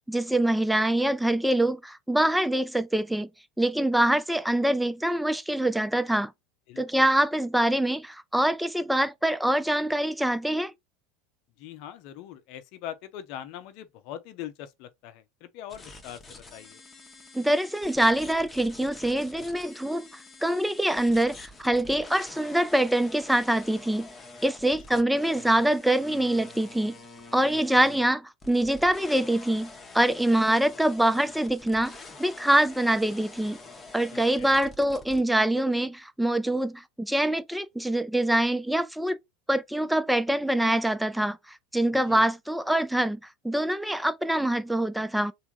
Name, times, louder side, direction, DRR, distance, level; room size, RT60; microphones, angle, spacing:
voice 1, 0.1-3.3 3.6-6.3 6.8-10.7 17.3-20.1 20.4-24.1 24.4-27.0 27.3-33.6 33.9-39.2 39.5-43.2 43.4-45.3, right 1 dB, 5° right, 0.4 m, -25 dB
voice 2, 6.7-7.0 11.6-16.8 24.9-25.1 27.5-27.9 34.1-34.5 42.1-42.3, left 11 dB, 55° left, 0.6 m, -42 dB
sound 1, 15.7-35.2, left 3 dB, 20° left, 0.8 m, -47 dB
3.4 x 2.0 x 3.9 m
figure-of-eight pair, 75°, 0 cm